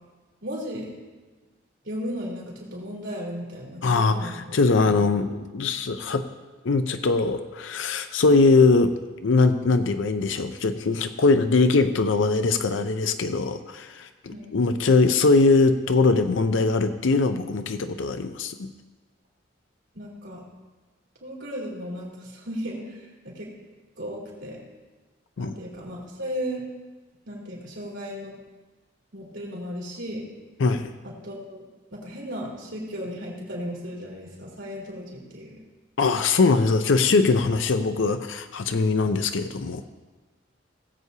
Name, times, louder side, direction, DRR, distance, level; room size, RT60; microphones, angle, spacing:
voice 1, 0.4-0.9 1.8-4.3 14.3-14.5 19.9-20.4 21.2-23.5 24.0-24.6 25.4-26.6 27.2-28.3 29.1-30.2 31.2-31.6 31.9-35.6, equal, 80° right, -4 dB, 3.4 m, -35 dB
voice 2, 3.8-6.3 6.6-18.7 25.4-25.5 30.6-30.9 36.0-39.8, left 3 dB, 85° left, 9 dB, 0.5 m, -21 dB
18.5 x 8.1 x 2.8 m, 1.2 s
head